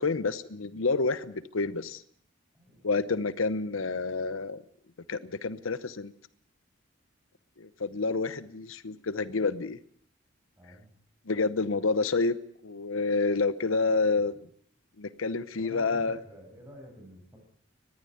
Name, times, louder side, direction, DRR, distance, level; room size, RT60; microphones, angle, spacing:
voice 1, 0.0-2.0 2.8-4.6 5.1-6.1 7.6-9.8 11.3-12.4 12.6-14.3 15.0-16.2, left 3 dB, 75° left, 15 dB, 0.8 m, -28 dB
voice 2, 2.5-3.4 10.6-10.9 14.1-14.3 15.6-17.4, equal, 10° right, 2 dB, 7.5 m, -50 dB
20.5 x 14.5 x 9.4 m, 0.63 s
head